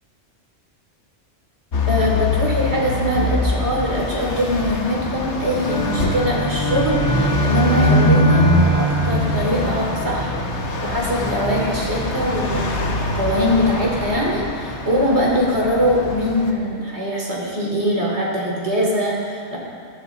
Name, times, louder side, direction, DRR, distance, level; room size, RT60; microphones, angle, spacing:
sound 1, 1.7-16.5, left 2 dB, 65° left, 1.5 m, -23 dB
voice 1, 1.9-10.4 10.8-19.6, equal, 60° right, -3 dB, 3.3 m, -22 dB
sound 2, 5.5-10.3, right 4 dB, 20° left, 2.6 m, -24 dB
18.0 x 13.0 x 3.9 m, 2.3 s
omnidirectional pair, 1.3 m